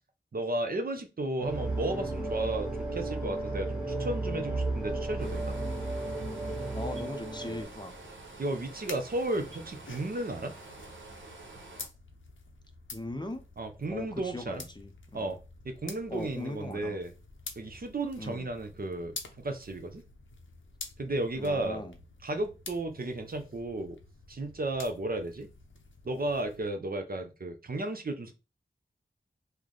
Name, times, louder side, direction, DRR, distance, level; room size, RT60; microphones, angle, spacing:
voice 1, 0.3-5.6 7.5-7.6 8.4-10.5 13.6-14.6 15.1-15.4 15.6-17.1 17.6-20.0 21.0-21.8 22.2-24.0 24.3-25.5 26.0-28.3, right 2 dB, 45° right, 6 dB, 0.6 m, -34 dB
sound 1, 1.4-7.6, right 2 dB, 5° right, 1.1 m, -33 dB
sound 2, 5.2-11.9, right 2 dB, 70° right, 0.9 m, -48 dB
voice 2, 6.6-8.0 12.9-13.4 13.9-15.3 16.1-17.0 18.2-18.5 21.4-22.0, left 1 dB, 20° left, 6 dB, 0.5 m, -40 dB
sound 3, 7.2-26.7, left 3 dB, 70° left, 0.6 m, -49 dB
3.2 x 2.1 x 3.8 m, 0.29 s
wide cardioid pair, 80°, 21 cm